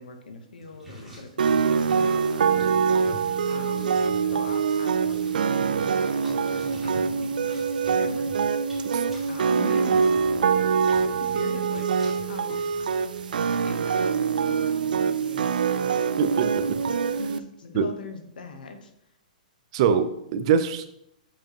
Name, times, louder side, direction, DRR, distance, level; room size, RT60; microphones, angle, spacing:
voice 1, 0.0-3.9 4.3-7.6 8.0-8.3 9.3-10.1 10.9-11.9 12.3-12.7 13.6-16.2 17.2-18.9, left 3 dB, 90° left, 6 dB, 1.1 m, -41 dB
sound 1, 0.6-13.6, right 1 dB, 5° right, 2.5 m, -47 dB
sound 2, 1.4-17.4, right 6 dB, 90° right, 0.4 m, -24 dB
voice 2, 16.2-16.7 17.7-17.9 19.7-20.9, right 7 dB, 45° right, 11 dB, 0.6 m, -23 dB
7.2 x 5.0 x 3.0 m, 0.77 s
hypercardioid pair, 150°, 5 cm